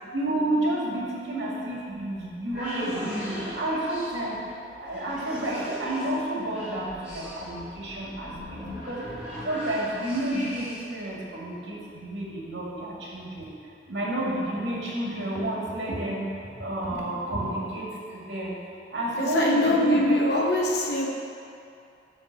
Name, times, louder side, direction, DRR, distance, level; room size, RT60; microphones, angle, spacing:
voice 1, 0.1-4.4 4.8-9.1 9.4-13.5 13.9-16.3 16.6-18.6 18.9-20.2, right 1 dB, 80° right, -5 dB, 2.0 m, -30 dB
sound 1, 1.9-11.0, equal, 5° right, 1.9 m, -39 dB
voice 2, 19.1-21.1, left 1 dB, 70° left, -1 dB, 0.9 m, -23 dB
8.8 x 3.6 x 6.7 m, 2.5 s
head